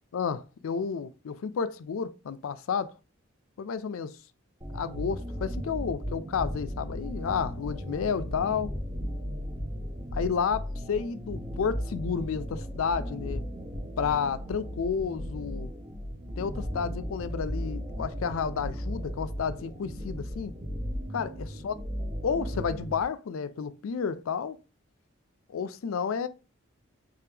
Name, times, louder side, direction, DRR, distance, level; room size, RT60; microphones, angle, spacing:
voice 1, 0.1-2.9 3.6-4.2 4.7-8.7 10.1-13.5 14.0-15.7 16.4-20.5 21.1-21.7 22.2-24.6 25.5-26.3, left 6 dB, 85° left, 0.4 m, -31 dB
sound 1, 4.6-23.0, equal, 20° right, 0.5 m, -36 dB
3.5 x 2.8 x 3.3 m
head